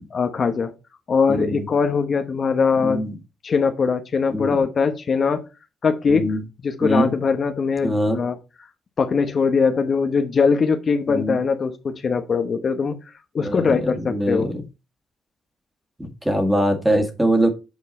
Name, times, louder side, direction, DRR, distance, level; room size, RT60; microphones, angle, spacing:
voice 1, 0.1-0.7 1.1-3.0 3.4-5.4 5.8-6.2 6.6-8.4 9.0-13.0 13.3-14.5, left 5 dB, 45° left, 7 dB, 0.9 m, -21 dB
voice 2, 1.3-1.6 2.8-3.2 4.3-4.5 6.1-6.4 6.8-7.1 7.8-8.2 11.1-11.4 13.4-14.6 16.0-17.5, equal, 10° right, 5 dB, 1.9 m, -22 dB
8.2 x 4.6 x 4.1 m, 0.28 s
cardioid pair, 90°, 0 cm